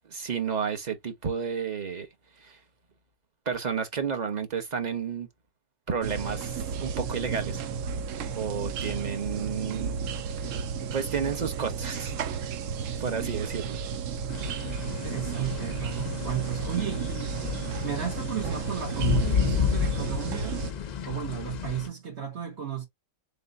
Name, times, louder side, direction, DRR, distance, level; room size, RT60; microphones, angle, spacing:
voice 1, 0.1-2.1 2.4-2.6 3.5-5.3 5.9-7.6 8.3-10.0 10.3-10.6 10.9-12.3 13.0-13.8, right 6 dB, 40° right, 0.9 m, -31 dB
sound 1, 6.0-20.7, right 6 dB, 85° right, 1.0 m, -33 dB
sound 2, 14.3-21.9, left 7 dB, 50° left, 0.5 m, -31 dB
voice 2, 14.9-17.4 17.8-20.6 21.0-22.8, right 9 dB, 60° right, 1.7 m, -33 dB
3.9 x 3.7 x 2.5 m
omnidirectional pair, 1.3 m